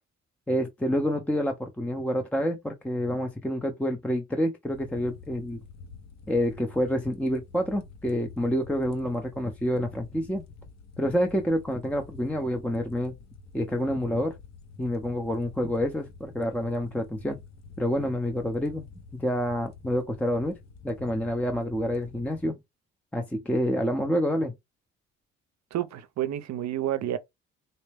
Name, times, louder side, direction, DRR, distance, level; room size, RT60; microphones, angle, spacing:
voice 1, 0.5-5.6 6.3-10.4 11.0-13.1 13.5-14.3 14.8-17.4 17.8-20.6 20.8-22.6 23.1-24.5, equal, 5° left, 0.6 m, -28 dB
sound 1, 4.7-22.4, left 4 dB, 65° left, 0.8 m, -48 dB
voice 2, 25.7-27.2, right 12 dB, 65° right, 0.6 m, -29 dB
4.0 x 2.1 x 3.3 m
cardioid pair, 90°, 30 cm